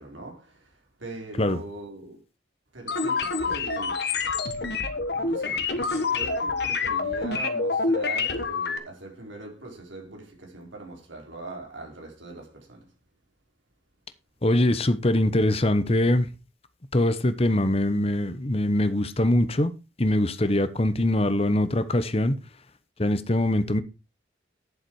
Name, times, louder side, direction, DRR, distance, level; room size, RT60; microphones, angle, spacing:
voice 1, 0.0-2.2 2.7-4.1 4.5-12.9, right 2 dB, 85° right, 4.5 m, -41 dB
sound 1, 2.9-8.8, left 4 dB, 60° left, 1.5 m, -27 dB
voice 2, 14.4-16.3 16.9-19.7 20.0-22.4 23.0-23.8, left 1 dB, 30° left, 1.0 m, -23 dB
10.5 x 7.4 x 4.7 m
head